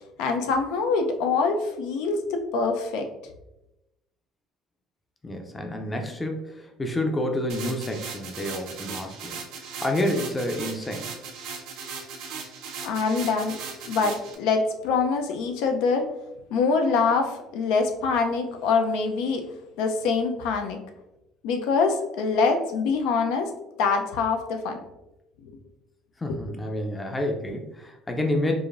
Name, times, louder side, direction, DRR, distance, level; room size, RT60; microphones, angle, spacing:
voice 1, 0.2-3.1 12.8-13.6 13.9-16.1 16.5-19.4 19.8-20.8 21.4-23.5 23.8-24.8 25.4-25.5 26.3-26.4, left 4 dB, 85° left, 4 dB, 0.5 m, -24 dB
voice 2, 5.2-11.1 26.2-28.5, left 1 dB, 10° left, 3 dB, 0.5 m, -29 dB
sound 1, 7.5-14.3, right 5 dB, 90° right, 0.7 m, -38 dB
4.8 x 2.6 x 2.5 m, 0.91 s
cardioid pair, 160°, 0 cm